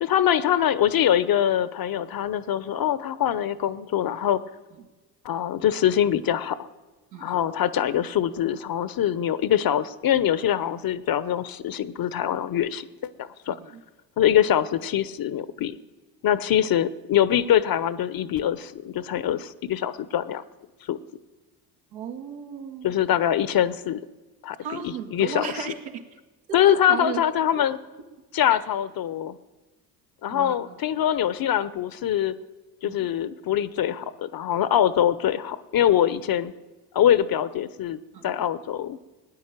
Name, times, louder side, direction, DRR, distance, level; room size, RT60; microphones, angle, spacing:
voice 1, 0.0-4.4 5.2-6.6 7.2-13.6 14.2-15.8 16.2-20.4 20.9-21.0 22.8-24.0 24.4-24.6 24.8-25.7 26.5-27.8 28.3-29.4 30.2-32.3 32.8-36.5 36.9-39.0, left 10 dB, 45° left, 16 dB, 0.9 m, -23 dB
voice 2, 13.5-13.8 14.3-14.4 21.9-23.0 24.6-26.0 26.5-27.2 28.5-28.6 30.3-30.8 32.8-33.1 38.1-38.4, right 7 dB, 75° right, 3 dB, 2.0 m, -35 dB
18.0 x 9.9 x 7.5 m, 1.2 s
hypercardioid pair, 60°, 49 cm